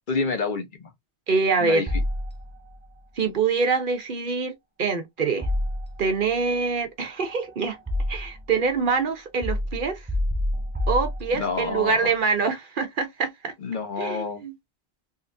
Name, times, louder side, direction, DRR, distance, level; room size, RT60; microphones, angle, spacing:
voice 1, 0.1-0.9 1.6-1.9 11.3-12.1 13.6-14.4, left 4 dB, 50° left, 0.9 m, -28 dB
voice 2, 1.3-1.8 3.2-5.5 6.0-7.8 8.1-10.1 10.9-13.5 14.0-14.5, right 4 dB, 55° right, 0.9 m, -25 dB
sound 1, 1.9-2.8 5.4-6.3 7.2-8.5 9.4-11.7, left 1 dB, 15° right, 0.3 m, -28 dB
3.9 x 2.5 x 2.5 m
omnidirectional pair, 1.1 m